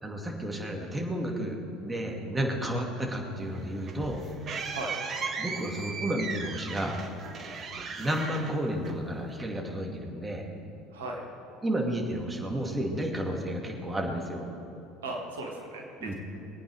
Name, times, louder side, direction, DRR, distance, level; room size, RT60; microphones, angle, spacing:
voice 1, 0.0-4.2 5.4-7.0 8.0-10.4 11.6-14.5 16.0-16.1, right 1 dB, 15° right, 1 dB, 2.4 m, -32 dB
sound 1, 3.5-9.3, right 5 dB, 40° right, 1.4 m, -37 dB
voice 2, 15.0-16.1, right 2 dB, 75° right, 0 dB, 1.9 m, -37 dB
22.5 x 9.2 x 5.0 m, 2.8 s
figure-of-eight pair, 65°, 0 cm